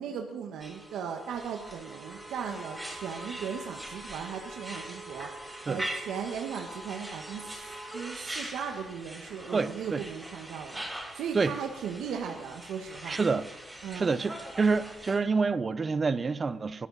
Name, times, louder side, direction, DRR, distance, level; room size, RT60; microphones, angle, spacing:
voice 1, 0.0-5.3 5.6-10.9 11.1-13.2 13.8-14.1, right 7 dB, 85° right, 1.6 m, -37 dB
sound 1, 0.6-15.2, right 1 dB, 10° right, 6.8 m, -42 dB
voice 2, 9.5-10.0 11.3-11.5 13.0-13.5 13.9-16.9, right 4 dB, 35° right, 0.9 m, -27 dB
24.0 x 13.5 x 4.2 m
cardioid pair, 90°, 0 cm